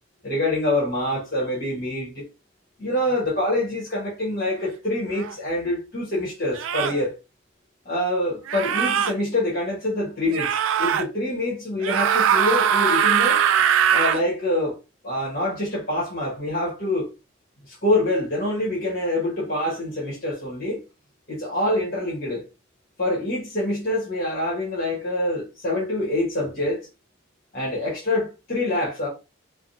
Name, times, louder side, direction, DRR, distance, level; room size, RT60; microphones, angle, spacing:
voice 1, 0.2-2.2 2.8-7.1 7.8-13.4 13.9-14.7 15.0-17.1 17.7-20.8 21.3-22.4 23.0-26.8 27.5-29.1, left 1 dB, 45° left, 1.2 m, -25 dB
sound 1, 5.2-5.3 6.5-7.0 8.5-9.1 10.3-11.0 11.8-14.2, right 8 dB, 75° right, 0.3 m, -21 dB
3.4 x 2.1 x 2.6 m
head